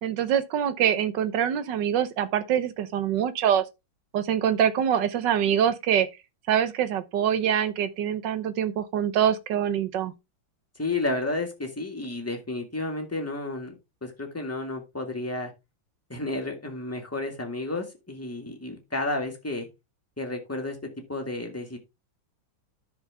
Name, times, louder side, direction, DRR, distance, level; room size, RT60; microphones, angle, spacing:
voice 1, 0.0-3.6 4.1-6.1 6.5-10.1, right 9 dB, 65° right, 1.5 m, -24 dB
voice 2, 10.8-15.5 16.1-19.7 20.2-20.8 21.1-21.8, left 2 dB, 5° left, 1.9 m, -31 dB
10.5 x 6.4 x 3.5 m
omnidirectional pair, 2.2 m